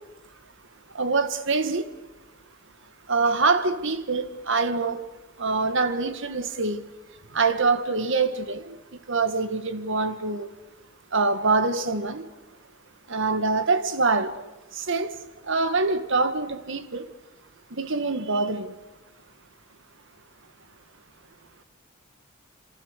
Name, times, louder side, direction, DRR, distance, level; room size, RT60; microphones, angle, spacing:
voice 1, 0.9-1.9 3.1-5.1 5.4-6.8 7.3-8.8 9.1-10.5 11.1-12.3 13.1-14.4 14.7-15.1 15.4-17.1 17.7-18.8, right 3 dB, 60° right, 1.8 m, -25 dB
28.5 x 27.0 x 6.7 m
head